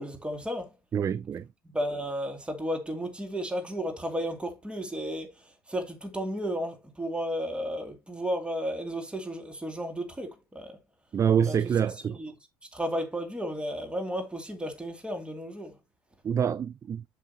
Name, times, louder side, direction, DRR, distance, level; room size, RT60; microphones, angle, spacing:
voice 1, 0.0-0.7 1.6-10.8 11.4-11.7 12.1-12.3 12.7-15.8, equal, 10° right, 2.5 m, -33 dB
voice 2, 0.9-1.5 11.1-12.2 16.2-17.0, right 8 dB, 30° right, 0.4 m, -26 dB
7.6 x 6.0 x 2.9 m
figure-of-eight pair, 55°, 11 cm